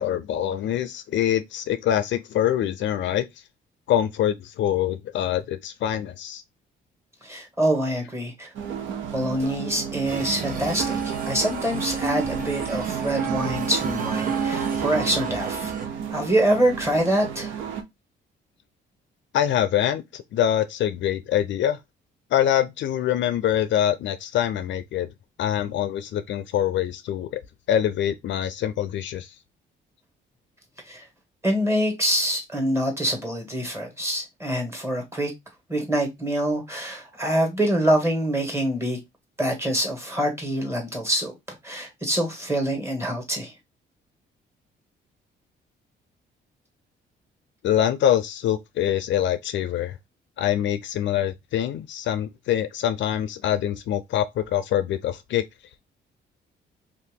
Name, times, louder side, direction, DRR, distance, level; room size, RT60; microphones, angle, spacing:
voice 1, 0.0-3.3 3.9-6.4 19.3-21.8 22.3-25.1 25.4-27.4 27.7-29.3 47.6-50.0 50.4-55.4, left 10 dB, 70° left, 0.4 m, -24 dB
voice 2, 7.2-8.5 9.1-15.7 16.1-17.5 30.9-31.0 31.4-35.3 35.7-39.0 39.4-41.3 41.6-43.5, right 1 dB, 15° right, 1.5 m, -25 dB
sound 1, 8.6-17.8, right 7 dB, 85° right, 0.7 m, -30 dB
sound 2, 10.0-15.9, right 4 dB, 45° right, 0.8 m, -37 dB
2.7 x 2.6 x 3.6 m
cardioid pair, 90°, 20 cm